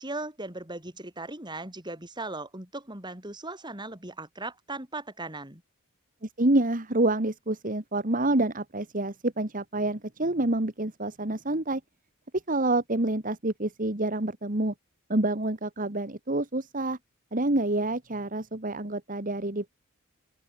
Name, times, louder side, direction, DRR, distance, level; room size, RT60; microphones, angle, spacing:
voice 1, 0.0-5.6, right 2 dB, 20° right, 5.9 m, -38 dB
voice 2, 6.2-11.8 12.5-14.7 15.1-17.0 17.3-19.7, right 2 dB, 40° right, 2.0 m, -27 dB
open air
head